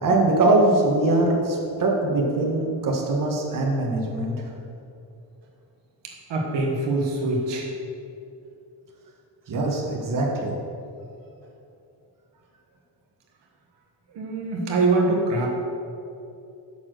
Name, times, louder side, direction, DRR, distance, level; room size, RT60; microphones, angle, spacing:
voice 1, 0.0-4.5 9.5-10.5, right 2 dB, 50° right, -1 dB, 1.6 m, -22 dB
voice 2, 6.3-7.7 14.1-15.5, right 2 dB, 90° right, 0 dB, 1.4 m, -23 dB
7.1 x 6.2 x 6.5 m, 2.7 s
cardioid pair, 130°, 42 cm